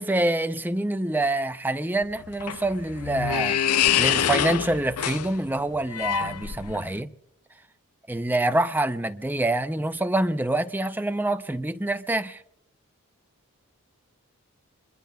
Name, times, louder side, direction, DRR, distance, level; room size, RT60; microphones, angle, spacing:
voice 1, 0.0-3.6 4.0-7.1 8.1-12.4, right 1 dB, 10° right, 0.5 m, -26 dB
sound 1, 2.0-7.0, left 9 dB, 85° left, 0.5 m, -26 dB
27.0 x 22.0 x 2.3 m
head